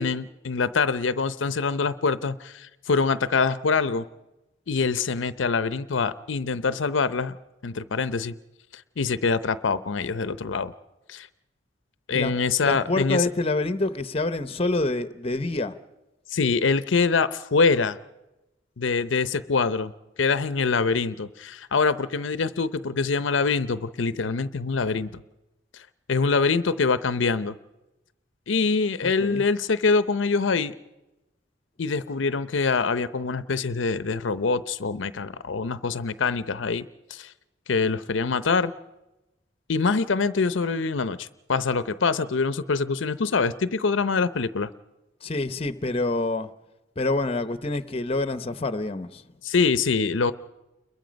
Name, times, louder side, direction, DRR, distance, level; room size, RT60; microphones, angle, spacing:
voice 1, 0.0-4.0 4.7-7.4 7.6-8.3 8.7-10.7 11.1-11.3 12.1-13.3 16.3-18.0 18.8-19.9 20.2-25.2 26.1-27.5 28.5-30.7 31.8-36.8 37.1-37.3 37.7-38.7 39.7-44.7 49.4-50.3, left 4 dB, 85° left, 0.7 m, -24 dB
voice 2, 12.6-15.7 29.0-29.4 45.2-46.5 47.0-49.2, left 2 dB, 30° left, 0.8 m, -27 dB
29.5 x 22.0 x 5.2 m
head